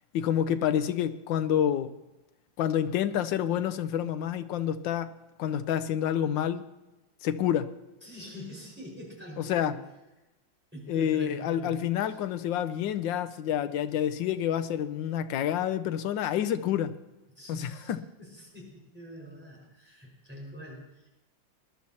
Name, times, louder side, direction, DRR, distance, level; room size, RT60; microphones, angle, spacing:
voice 1, 0.1-1.9 2.6-5.1 5.4-6.6 7.2-7.7 9.5-9.7 10.9-17.0 17.5-18.0, left 10 dB, 80° left, 1.4 m, -28 dB
voice 2, 8.0-9.9 10.7-12.2 17.3-21.1, equal, 5° right, 5.1 m, -44 dB
20.0 x 12.0 x 2.9 m
omnidirectional pair, 2.0 m